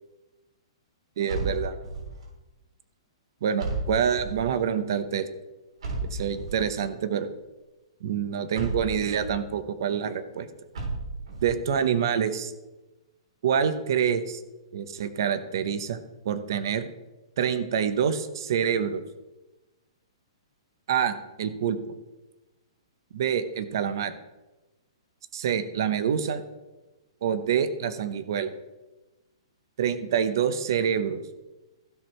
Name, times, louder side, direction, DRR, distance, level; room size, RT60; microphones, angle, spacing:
voice 1, 1.2-1.8 3.4-5.3 6.0-7.3 8.0-10.5 11.4-12.5 13.4-14.4 14.7-16.0 16.2-16.9 17.4-19.0 20.9-21.8 23.1-24.1 25.3-26.4 27.2-28.5 29.8-31.2, right 8 dB, 45° right, 11 dB, 0.9 m, -26 dB
sound 1, 1.3-2.2 3.6-4.6 5.8-6.8 8.5-9.4 10.7-11.6, right 2 dB, 75° right, 4.1 m, -33 dB
15.0 x 6.3 x 4.5 m, 1.1 s
hypercardioid pair, 180°, 3 cm